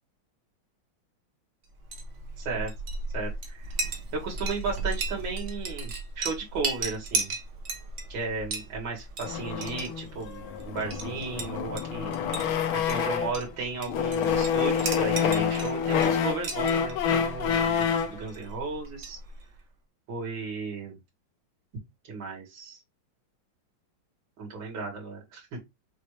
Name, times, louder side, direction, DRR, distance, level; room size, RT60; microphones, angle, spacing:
Chink clink, 1.7-19.6, right 3 dB, 50° right, 0.9 m, -36 dB
voice 1, 2.4-2.7 3.1-3.7 4.1-7.3 8.1-12.1 12.7-19.2 20.1-20.9 22.1-22.8 24.4-25.6, right 4 dB, 65° right, 2.6 m, -35 dB
sound 1, 9.3-13.5 13.9-18.2, left 7 dB, 80° left, 1.6 m, -27 dB
5.8 x 2.7 x 3.1 m
omnidirectional pair, 2.3 m